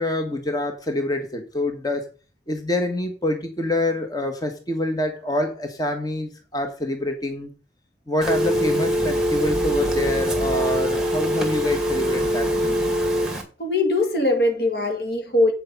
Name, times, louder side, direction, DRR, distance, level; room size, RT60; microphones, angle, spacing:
voice 1, 0.0-2.0 2.5-7.5 8.1-12.8, left 1 dB, 20° left, 1.4 m, -26 dB
Telephone, 8.2-13.4, equal, 5° right, 2.0 m, -23 dB
voice 2, 13.6-15.5, left 2 dB, 65° left, 2.1 m, -21 dB
8.5 x 6.7 x 5.3 m
head